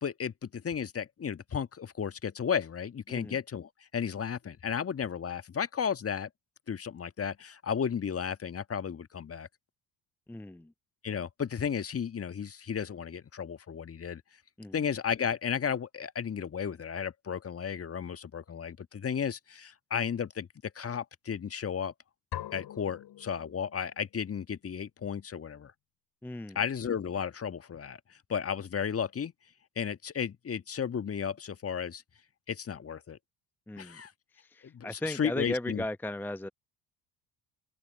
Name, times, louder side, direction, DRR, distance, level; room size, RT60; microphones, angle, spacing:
voice 1, 0.0-6.3 6.7-9.5 11.0-14.2 14.7-20.5 20.7-21.9 22.5-25.7 26.5-28.0 28.3-29.3 29.7-32.0 32.5-33.2 33.8-34.1 34.6-35.8, left 7 dB, 30° left, 1.7 m, -34 dB
voice 2, 10.3-10.7 14.6-14.8 26.2-26.6 33.7-34.0 34.3-36.5, left 1 dB, 5° left, 0.8 m, -36 dB
sound 1, 22.3-24.1, left 13 dB, 50° left, 7.1 m, -43 dB
open air
figure-of-eight pair, 50°, 49 cm